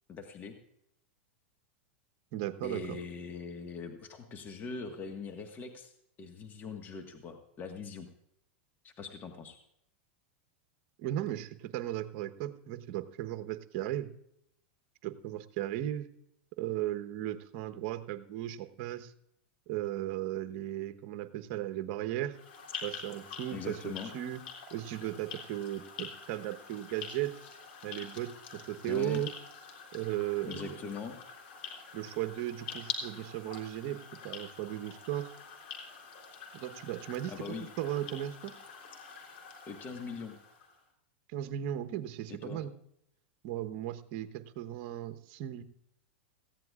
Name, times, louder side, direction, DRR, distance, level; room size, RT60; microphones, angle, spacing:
voice 1, 0.1-0.6 2.6-5.9 6.2-8.1 8.8-9.6 23.5-24.1 28.9-29.2 30.5-31.2 37.3-37.7 39.1-39.3 39.7-40.4 42.3-42.6, left 5 dB, 30° left, 4 dB, 1.5 m, -42 dB
voice 2, 2.3-3.0 11.0-14.1 15.0-16.1 16.6-19.1 19.7-22.4 22.8-24.4 24.7-27.3 27.8-29.3 29.9-30.8 31.9-35.3 36.5-37.5 37.8-38.5 41.3-42.7 43.4-45.6, right 13 dB, 55° right, 9 dB, 1.1 m, -36 dB
sound 1, 22.3-40.8, left 6 dB, 70° left, 3.6 m, -46 dB
18.0 x 15.0 x 2.4 m, 0.77 s
hypercardioid pair, 110°, 6 cm